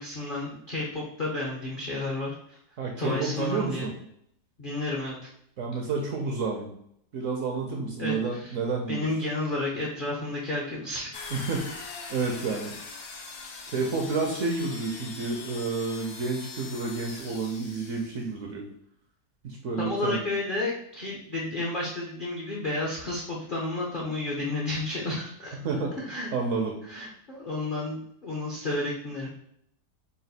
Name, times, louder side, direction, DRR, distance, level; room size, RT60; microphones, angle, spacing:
voice 1, 0.0-2.6 3.0-3.9 4.6-5.2 8.0-8.5 8.9-11.4 19.8-25.6 26.0-26.3 26.9-29.3, left 2 dB, 55° left, -4 dB, 0.5 m, -31 dB
voice 2, 2.8-3.9 5.6-6.7 7.1-9.1 11.3-11.7 12.1-12.7 13.7-18.6 19.4-20.2 25.5-25.9 26.3-26.7, right 4 dB, 65° right, 1 dB, 0.8 m, -30 dB
sound 1, 11.1-18.3, left 4 dB, 75° left, 1.2 m, -42 dB
4.1 x 2.3 x 4.0 m, 0.70 s
omnidirectional pair, 1.8 m